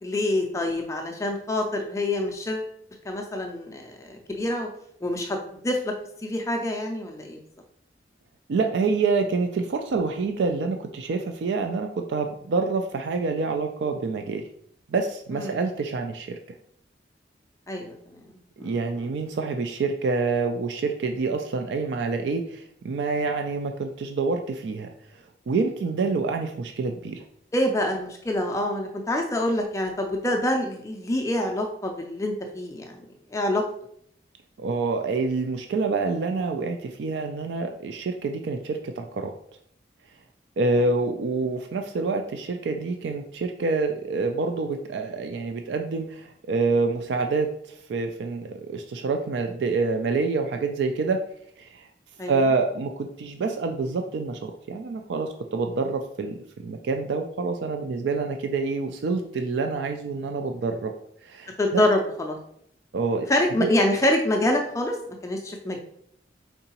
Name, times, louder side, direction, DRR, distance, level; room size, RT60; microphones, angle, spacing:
voice 1, 0.0-2.7 3.1-4.7 5.0-5.4 5.6-5.9 6.2-7.4 15.3-15.6 17.7-18.2 18.6-19.1 27.5-32.9 33.3-33.6 52.2-52.3 61.6-62.4 63.3-65.0 65.2-65.8, left 1 dB, 15° left, 2 dB, 0.4 m, -26 dB
voice 2, 8.5-14.4 14.9-16.4 18.6-24.9 25.5-27.2 34.6-39.3 40.6-51.2 51.6-51.9 52.3-56.3 56.6-60.9 61.2-61.9 62.9-63.3 63.6-63.7, right 4 dB, 75° right, 5 dB, 0.4 m, -27 dB
4.5 x 3.8 x 2.9 m, 0.68 s
head